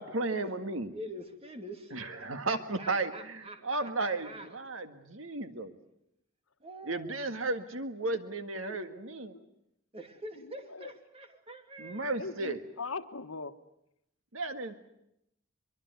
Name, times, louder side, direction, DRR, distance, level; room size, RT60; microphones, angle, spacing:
voice 1, 0.0-0.9 1.9-5.8 6.8-9.4 11.8-12.6 14.3-14.7, right 2 dB, 75° right, 9 dB, 1.8 m, -34 dB
voice 2, 0.9-3.9 4.2-4.6 6.6-7.3 9.9-12.3, equal, 30° right, 6 dB, 2.6 m, -45 dB
voice 3, 10.4-10.9 12.2-13.5, left 4 dB, 90° left, 10 dB, 1.4 m, -40 dB
23.5 x 23.0 x 9.3 m, 0.80 s
head